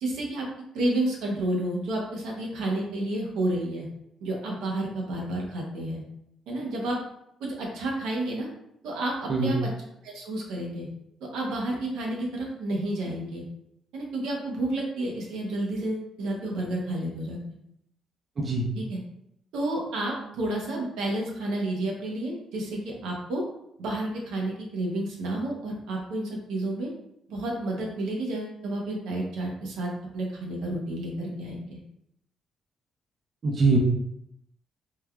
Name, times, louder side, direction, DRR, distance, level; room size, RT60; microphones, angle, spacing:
voice 1, 0.0-0.4 0.7-3.9 4.2-6.0 6.5-7.0 7.4-8.5 8.8-9.7 10.0-10.9 11.3-13.4 13.9-17.4 18.7-19.0 19.5-23.4 23.8-26.9 27.3-31.8, right 1 dB, 85° right, -1 dB, 0.7 m, -30 dB
voice 2, 33.4-33.8, right 3 dB, 45° right, 0 dB, 0.5 m, -23 dB
3.2 x 2.2 x 2.2 m, 0.77 s
cardioid pair, 90°, 0 cm